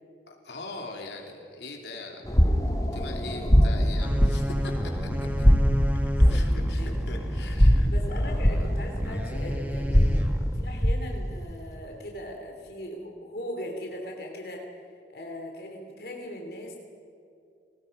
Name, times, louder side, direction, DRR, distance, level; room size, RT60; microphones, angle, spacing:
voice 1, 0.3-4.7 5.4-5.5 6.3-7.9 8.1-8.4 9.9-10.3, left 3 dB, 80° left, 1 dB, 3.2 m, -41 dB
sound 1, 2.3-11.2, equal, 20° left, 1.6 m, -23 dB
sound 2, 4.0-10.8, equal, 10° right, 1.5 m, -34 dB
voice 2, 6.1-6.9 7.8-10.1 10.5-14.6 15.1-16.8, left 1 dB, 60° left, 1 dB, 3.0 m, -39 dB
29.5 x 20.0 x 5.4 m, 2.5 s
head